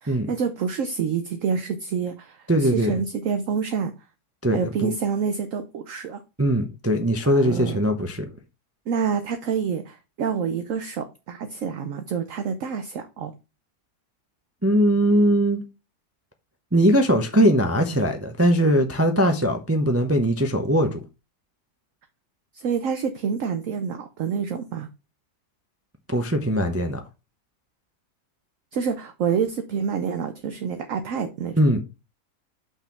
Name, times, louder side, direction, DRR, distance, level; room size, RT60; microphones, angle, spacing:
voice 1, 0.0-3.9 4.5-6.2 7.2-7.8 8.9-13.3 22.5-24.9 28.7-31.5, right 6 dB, 60° right, 1.0 m, -27 dB
voice 2, 2.5-2.9 4.4-4.9 6.4-8.3 14.6-15.6 16.7-21.0 26.1-27.0 31.5-31.8, equal, 20° right, 0.4 m, -20 dB
5.9 x 4.4 x 5.9 m
omnidirectional pair, 1.7 m